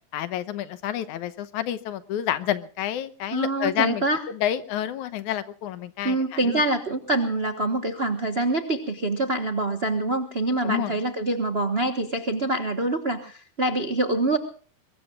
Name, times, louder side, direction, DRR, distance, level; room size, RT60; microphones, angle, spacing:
voice 1, 0.1-4.0 4.3-6.2 6.5-6.6 10.6-10.9, left 11 dB, 75° left, 13 dB, 2.3 m, -29 dB
voice 2, 3.3-4.2 6.0-14.4, right 2 dB, 70° right, 6 dB, 0.5 m, -25 dB
23.5 x 22.0 x 2.5 m, 0.40 s
omnidirectional pair, 3.5 m